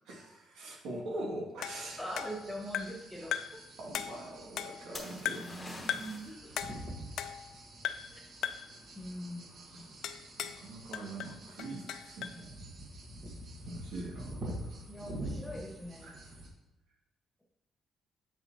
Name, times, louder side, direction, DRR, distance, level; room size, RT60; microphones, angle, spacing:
voice 1, 0.1-2.2 2.8-2.9 3.2-3.3 3.8-6.0 9.7-9.9 10.4-12.5 13.7-14.5 16.0-16.3, right 1 dB, 80° right, -2 dB, 2.2 m, -43 dB
sound 1, 1.6-3.1 3.3-3.7 3.9-4.9 5.3-5.6 5.9-6.2 6.6-7.6 7.8-8.2 8.4-8.8 10.0-10.6 10.9-12.4, left 10 dB, 65° left, 0.4 m, -38 dB
sound 2, 1.7-16.5, right 1 dB, 45° right, 1.5 m, -47 dB
voice 2, 2.0-3.4 5.8-6.7 8.9-9.5 14.9-16.2, equal, ahead, -2 dB, 1.6 m, -42 dB
sound 3, 4.9-6.4 10.1-10.5, left 2 dB, 20° left, 1.0 m, -47 dB
8.1 x 6.6 x 2.9 m, 1.0 s
cardioid pair, 165°, 0 cm